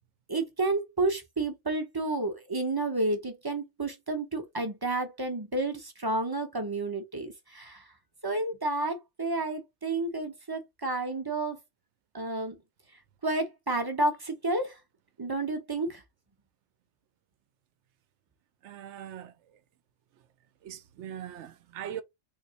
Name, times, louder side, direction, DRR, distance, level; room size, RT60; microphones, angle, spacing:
voice 1, 0.3-7.9 8.2-11.6 12.1-12.6 13.2-14.8 15.2-16.0, right 2 dB, 25° right, 0.6 m, -31 dB
voice 2, 18.6-19.3 20.6-22.0, right 10 dB, 70° right, 0.9 m, -40 dB
4.0 x 2.9 x 2.8 m
omnidirectional pair, 1.3 m